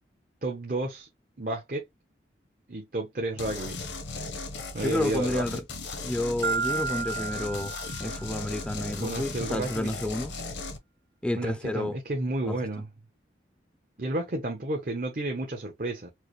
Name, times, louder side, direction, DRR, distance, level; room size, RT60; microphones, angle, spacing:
voice 1, 0.4-1.1 1.4-1.8 2.7-3.8 4.7-5.6 9.0-10.0 11.3-12.9 14.0-16.1, right 2 dB, 50° right, 0.9 m, -31 dB
sound 1, 3.4-10.8, left 3 dB, 85° left, 1.0 m, -37 dB
voice 2, 4.8-5.6 6.0-7.7 8.0-10.3 11.2-12.0 12.4-12.6, left 1 dB, 5° left, 0.3 m, -30 dB
Marimba xylophone, 6.4-8.6, right 5 dB, 70° right, 0.3 m, -32 dB
4.6 x 2.1 x 3.1 m
head